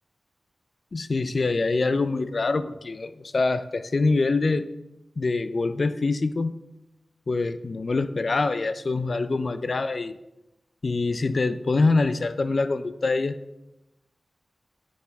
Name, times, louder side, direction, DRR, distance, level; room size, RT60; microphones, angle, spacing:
voice 1, 0.9-4.7 5.2-6.5 7.3-10.2 10.8-13.4, left 3 dB, 60° left, 12 dB, 0.4 m, -25 dB
9.1 x 6.9 x 3.4 m, 0.95 s
wide cardioid pair, 70°, 0 cm